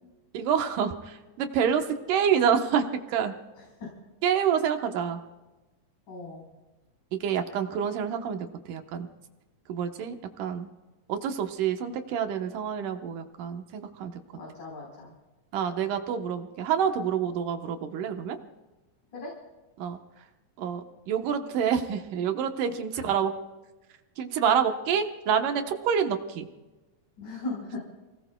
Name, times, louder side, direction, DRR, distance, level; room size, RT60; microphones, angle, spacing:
voice 1, 0.3-3.3 4.2-5.2 7.1-9.1 9.7-10.7 11.1-14.1 15.5-18.4 19.8-20.0 20.6-23.3 24.2-26.5, right 8 dB, 75° right, 5 dB, 2.6 m, -27 dB
voice 2, 6.1-6.5 14.3-15.1 19.1-19.3 22.9-23.1 27.2-27.8, left 2 dB, 65° left, -4 dB, 5.8 m, -38 dB
29.0 x 18.5 x 2.2 m, 1.1 s
omnidirectional pair, 3.9 m